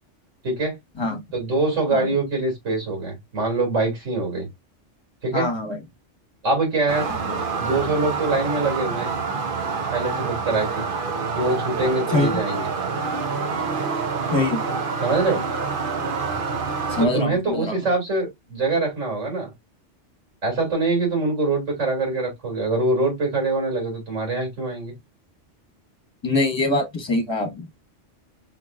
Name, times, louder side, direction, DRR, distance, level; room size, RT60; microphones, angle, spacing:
voice 1, 0.4-0.7 1.3-4.5 5.2-5.5 6.4-7.1 7.6-9.1 9.9-10.8 11.3-12.7 15.0-15.4 17.0-19.5 20.4-24.9, right 3 dB, 85° right, 3.0 m, -24 dB
voice 2, 5.3-5.8 7.2-7.4 12.1-12.4 14.3-14.6 16.9-17.8 26.2-27.7, left 2 dB, 20° left, 1.4 m, -23 dB
sound 1, 6.9-17.1, right 5 dB, 50° right, 0.9 m, -27 dB
5.7 x 3.1 x 2.4 m
omnidirectional pair, 1.3 m